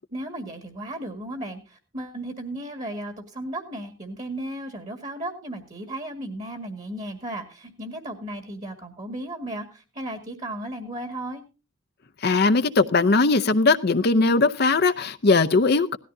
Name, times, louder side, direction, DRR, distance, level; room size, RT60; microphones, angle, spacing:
voice 1, 0.1-11.4, right 1 dB, 35° right, 1.9 m, -35 dB
voice 2, 12.2-16.0, left 3 dB, 55° left, 0.7 m, -19 dB
17.5 x 13.5 x 2.7 m
head